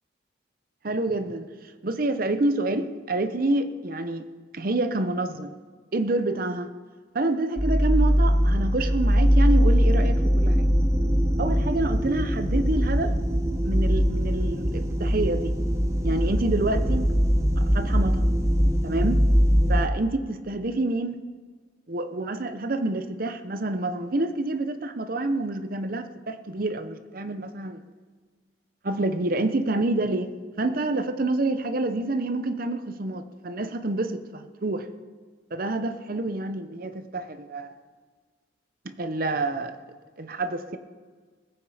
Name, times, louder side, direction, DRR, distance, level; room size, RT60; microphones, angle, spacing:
voice 1, 0.8-1.5 1.8-4.3 4.5-5.6 5.9-6.7 7.1-10.7 11.4-13.1 13.6-15.5 16.0-17.1 17.6-18.3 18.8-19.3 19.7-21.2 21.9-27.8 28.8-34.9 35.5-37.8 38.8-39.8 40.2-40.8, right 2 dB, 45° right, 10 dB, 0.8 m, -28 dB
sound 1, 7.6-19.9, equal, 15° right, 0.9 m, -22 dB
20.5 x 8.9 x 5.0 m, 1.5 s
head